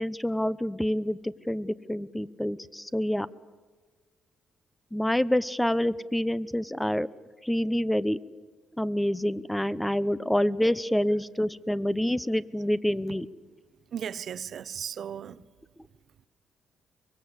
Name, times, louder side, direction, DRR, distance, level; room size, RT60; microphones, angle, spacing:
voice 1, 0.0-3.3 4.9-7.1 7.4-8.2 8.8-13.3, equal, 5° left, 0.8 m, -27 dB
voice 2, 13.9-15.5, right 8 dB, 60° right, 0.9 m, -36 dB
24.0 x 21.5 x 8.1 m
cardioid pair, 90°, 0 cm